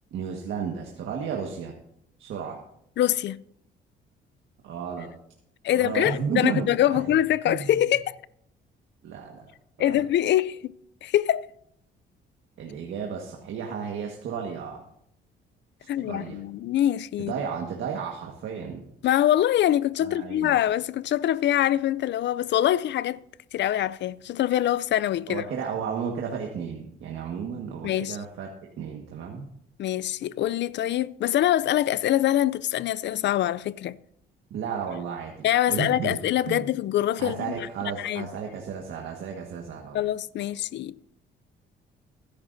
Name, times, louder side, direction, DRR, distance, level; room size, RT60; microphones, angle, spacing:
voice 1, 0.1-1.7 2.2-2.6 4.6-5.1 5.7-7.1 7.5-7.8 9.0-9.4 9.8-9.9 12.6-14.8 16.0-16.4 17.2-18.8 20.0-20.5 25.3-28.5 28.8-29.5 34.5-35.3 35.7-36.2 36.5-36.7 37.2-40.0, right 7 dB, 75° right, 1.6 m, -33 dB
voice 2, 3.0-3.4 5.6-8.2 9.8-10.7 11.0-11.5 15.9-17.3 19.0-23.2 23.5-25.4 27.8-28.2 29.8-34.0 35.4-37.5 38.0-38.3 39.9-41.0, left 12 dB, 65° left, 0.4 m, -24 dB
19.5 x 10.5 x 2.7 m
cardioid pair, 90°, 20 cm